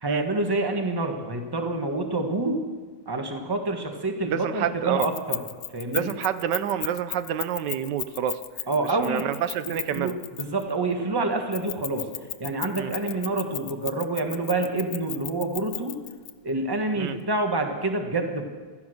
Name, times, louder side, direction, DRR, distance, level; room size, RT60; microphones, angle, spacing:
voice 1, 0.0-2.6 3.0-5.4 5.7-6.1 8.7-9.3 9.6-12.1 12.4-16.0 16.4-18.4, right 2 dB, 15° right, 4 dB, 1.4 m, -27 dB
voice 2, 4.3-5.1 5.9-8.4 9.0-10.1 12.8-12.9 17.0-17.1, right 9 dB, 85° right, 12 dB, 1.4 m, -28 dB
Keys jangling, 5.0-10.7 11.5-16.3, left 13 dB, 75° left, 1.2 m, -34 dB
15.5 x 13.0 x 6.4 m, 1.5 s
omnidirectional pair, 1.8 m